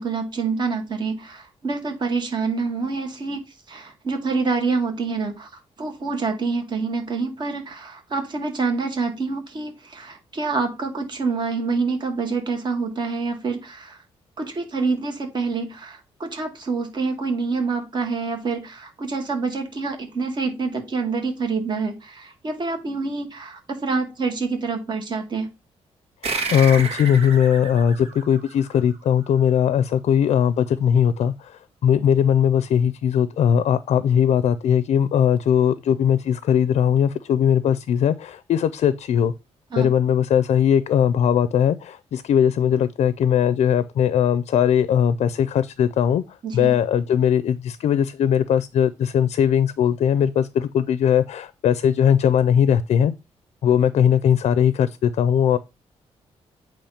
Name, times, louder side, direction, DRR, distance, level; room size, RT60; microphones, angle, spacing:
voice 1, 0.0-3.4 3.7-5.5 5.8-14.0 14.4-25.5 39.7-39.9 46.4-46.7, right 4 dB, 40° right, 1.9 m, -26 dB
voice 2, 26.2-39.3 39.8-53.1 53.6-55.6, left 9 dB, 70° left, 0.5 m, -19 dB
sound 1, 26.2-29.2, right 4 dB, 60° right, 1.9 m, -31 dB
8.5 x 3.1 x 5.8 m
cardioid pair, 140°, 12 cm